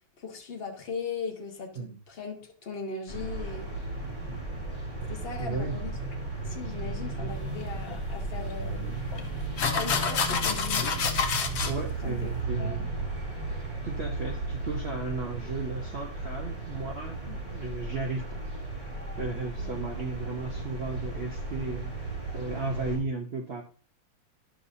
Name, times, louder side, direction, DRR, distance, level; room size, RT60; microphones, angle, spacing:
voice 1, 0.2-3.7 5.1-6.0 6.4-9.0 9.7-11.1 11.4-11.7 12.0-12.3 12.6-12.9 17.1-17.4 19.6-19.8, left 4 dB, 35° left, 2 dB, 1.2 m, -38 dB
sound 1, 3.1-23.0, right 2 dB, 15° right, 3.7 m, -35 dB
voice 2, 5.4-5.8 11.6-12.9 13.8-18.4 18.7-23.6, right 3 dB, 70° right, 1 dB, 0.5 m, -35 dB
sound 2, 7.9-8.0 9.1-9.2 9.6-11.7, left 6 dB, 85° left, 0.5 m, -28 dB
11.5 x 5.5 x 2.6 m, 0.38 s
omnidirectional pair, 2.2 m